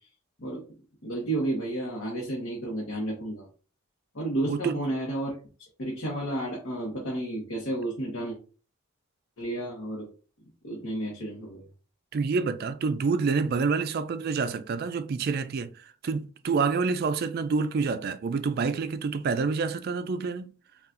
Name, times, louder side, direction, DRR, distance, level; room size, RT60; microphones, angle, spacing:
voice 1, 1.0-3.5 4.1-5.3 5.8-8.4 9.4-10.1 10.6-11.6, right 1 dB, 65° left, 0.9 m, -31 dB
voice 2, 4.5-4.8 12.1-20.5, right 4 dB, 45° right, 0.3 m, -28 dB
5.4 x 2.4 x 2.5 m
head